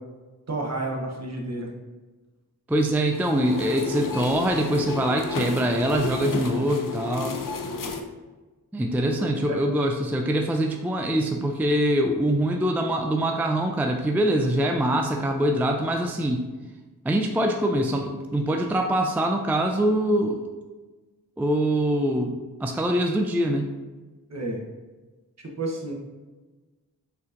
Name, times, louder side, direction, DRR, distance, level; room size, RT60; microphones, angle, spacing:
voice 1, 0.5-1.7 9.2-9.6 24.3-24.6 25.4-25.9, right 2 dB, 45° right, 1 dB, 0.9 m, -31 dB
voice 2, 2.7-7.4 8.7-16.5 17.0-20.5 21.4-22.3 22.6-23.7, right 1 dB, 5° right, 3 dB, 0.3 m, -24 dB
sound 1, 3.0-8.0, left 3 dB, 60° left, 0.5 m, -32 dB
4.3 x 3.9 x 2.5 m, 1.2 s
cardioid pair, 45°, 37 cm